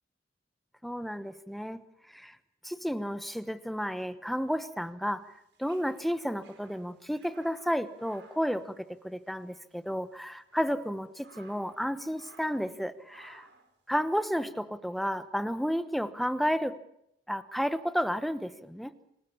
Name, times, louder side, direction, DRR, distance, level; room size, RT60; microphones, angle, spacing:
voice 1, 0.8-1.8 2.1-2.4 2.6-5.3 5.6-13.5 13.9-16.8 17.3-18.9, equal, ahead, 12 dB, 1.1 m, -32 dB
sound 1, 5.3-9.4 9.6-9.8 10.3-11.8 12.1-12.7 13.1-13.7, right 3 dB, 70° right, 4.5 m, -58 dB
26.5 x 19.0 x 7.3 m, 0.77 s
head